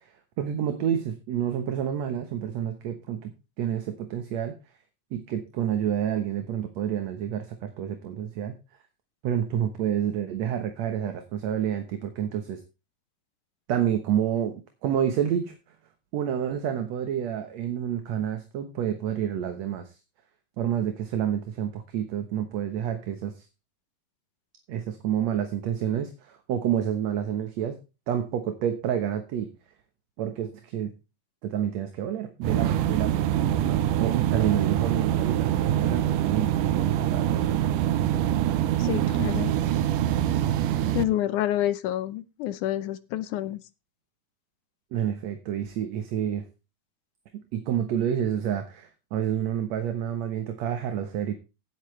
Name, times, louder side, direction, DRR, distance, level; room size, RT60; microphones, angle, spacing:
voice 1, 0.4-4.5 5.1-8.6 9.2-12.6 13.7-15.5 16.1-19.9 20.6-23.3 24.7-27.8 28.1-29.5 30.2-30.9 31.4-37.6 44.9-46.4 47.3-51.4, right 9 dB, 65° right, 7 dB, 2.2 m, -29 dB
sound 1, 32.4-41.0, right 11 dB, 80° right, 2.3 m, -24 dB
voice 2, 38.8-39.5 40.9-43.6, left 13 dB, 75° left, 14 dB, 2.2 m, -28 dB
16.5 x 8.4 x 3.2 m, 0.29 s
omnidirectional pair, 3.7 m